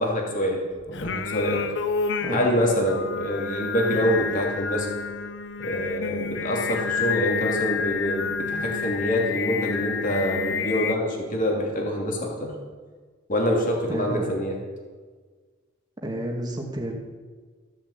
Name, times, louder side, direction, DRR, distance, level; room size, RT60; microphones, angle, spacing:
voice 1, 0.0-1.7 2.3-4.9 5.6-12.5 13.3-14.6, equal, 45° left, 0 dB, 2.9 m, -25 dB
Singing, 0.9-10.9, left 5 dB, 65° left, 0.7 m, -29 dB
voice 2, 13.9-14.3 16.0-16.9, right 1 dB, 20° right, 1 dB, 2.0 m, -30 dB
14.5 x 7.3 x 8.1 m, 1.5 s
head